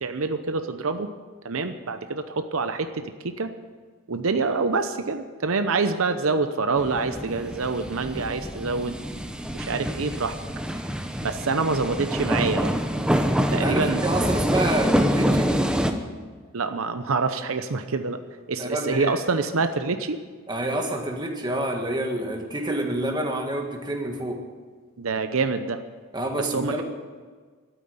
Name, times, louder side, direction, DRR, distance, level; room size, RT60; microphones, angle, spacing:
voice 1, 0.0-1.1 1.4-3.5 4.1-9.0 9.5-10.4 11.2-12.7 13.5-14.0 16.5-18.2 18.5-20.2 25.0-25.8 26.4-26.8, right 4 dB, 75° right, 8 dB, 0.8 m, -26 dB
sound 1, 6.8-15.9, equal, 5° right, 0.8 m, -26 dB
voice 2, 13.5-15.5 18.6-19.2 20.5-24.4 26.1-26.8, right 1 dB, 20° right, 2 dB, 1.7 m, -28 dB
12.5 x 9.1 x 9.6 m, 1.5 s
head